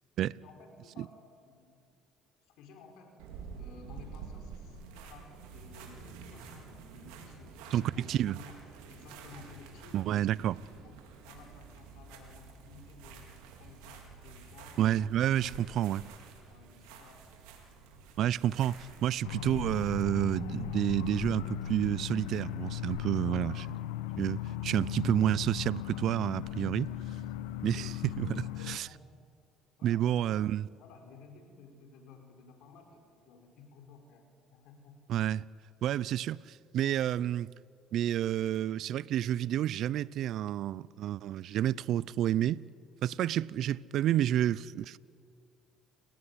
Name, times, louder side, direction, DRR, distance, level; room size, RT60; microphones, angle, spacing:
voice 1, 0.4-1.9 2.4-3.2 3.5-6.7 6.9-8.6 8.9-10.0 10.5-10.6 10.8-15.1 15.7-15.8 16.5-17.5 23.2-23.7 28.4-29.2 29.8-35.0, left 4 dB, 70° left, 5.1 m, -55 dB
sound 1, 3.2-19.1, right 5 dB, 85° right, 4.5 m, -49 dB
voice 2, 7.7-8.4 9.9-10.6 14.8-16.1 18.2-23.6 24.2-26.9 27.6-28.9 29.8-30.7 35.1-35.5 35.8-37.5 37.9-42.6 43.0-45.0, right 12 dB, 60° right, 0.6 m, -30 dB
sound 2, 19.2-28.8, left 13 dB, 90° left, 1.0 m, -37 dB
30.0 x 18.0 x 9.9 m
supercardioid pair, 90°, 0 cm